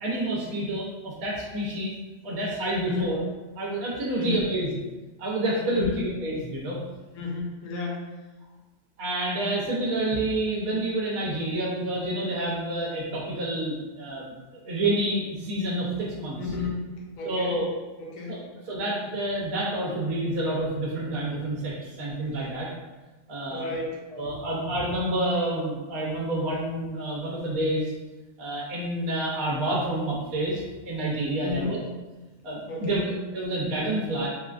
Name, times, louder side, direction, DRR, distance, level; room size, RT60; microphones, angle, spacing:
voice 1, 0.0-1.9 2.2-3.2 3.6-4.7 5.2-6.8 9.0-14.4 14.7-16.4 17.2-17.7 18.3-18.4 18.6-22.7 23.3-23.7 24.1-27.9 28.4-31.8 32.4-34.3, right 1 dB, 85° right, -4 dB, 1.2 m, -28 dB
voice 2, 4.2-4.5 5.7-6.1 7.2-8.0 16.4-17.6 18.0-18.5 23.5-24.0 31.4-31.8 32.7-33.0, left 4 dB, 75° left, -1 dB, 1.1 m, -32 dB
3.6 x 2.3 x 2.3 m, 1.2 s
omnidirectional pair, 1.5 m